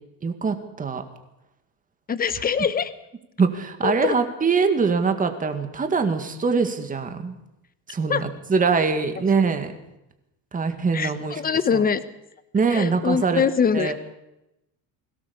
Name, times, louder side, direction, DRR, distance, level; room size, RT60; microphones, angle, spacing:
voice 1, 0.2-1.0 3.4-7.4 7.9-9.7 10.5-11.4 11.7-11.8 12.5-13.4 13.7-13.9, right 5 dB, 20° right, 7 dB, 2.1 m, -23 dB
voice 2, 2.1-2.9 3.8-4.2 8.1-8.2 10.9-12.0 12.7-13.9, left 6 dB, 20° left, 13 dB, 1.2 m, -23 dB
22.0 x 17.5 x 7.1 m, 0.90 s
cardioid pair, 145°, 41 cm